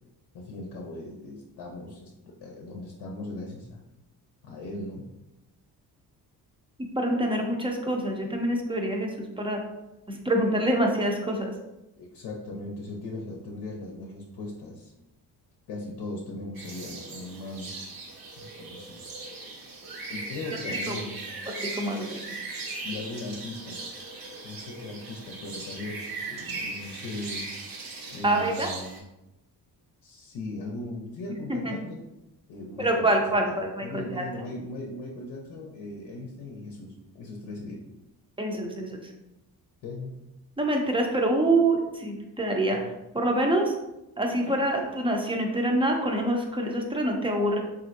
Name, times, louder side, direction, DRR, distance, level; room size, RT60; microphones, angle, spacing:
voice 1, 0.3-3.8 4.4-5.1 12.0-14.9 15.7-17.7 18.4-19.1 20.1-21.2 22.8-23.8 24.4-27.5 28.1-29.0 30.0-32.0 32.5-37.9 39.8-40.2, left 2 dB, 75° left, -1 dB, 0.6 m, -38 dB
voice 2, 7.0-9.6 10.1-11.5 20.7-21.0 21.6-22.2 28.2-28.7 31.6-31.8 32.8-34.2 38.4-39.1 40.6-42.8 43.1-43.7 44.2-47.6, right 1 dB, 15° right, 2 dB, 0.5 m, -26 dB
sound 1, 16.5-29.0, right 3 dB, 60° right, 0.8 m, -38 dB
3.2 x 2.6 x 2.6 m, 0.93 s
cardioid pair, 85°, 40 cm